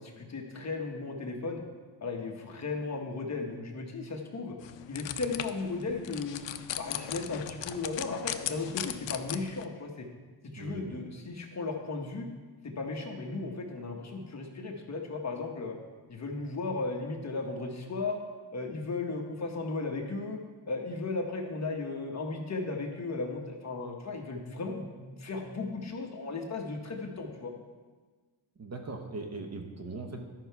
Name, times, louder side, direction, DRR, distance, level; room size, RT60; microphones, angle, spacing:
voice 1, 0.0-1.6 2.0-4.5 4.9-6.4 6.8-10.1 10.5-12.3 12.6-15.8 16.1-18.2 18.5-20.4 20.7-27.5, left 3 dB, 35° left, 1 dB, 1.1 m, -35 dB
sound 1, 4.6-9.6, left 11 dB, 65° left, 0.6 m, -38 dB
voice 2, 10.6-11.0 28.6-30.2, right 3 dB, 35° right, 3 dB, 0.9 m, -40 dB
12.0 x 5.6 x 4.6 m, 1.4 s
wide cardioid pair, 150°, 48 cm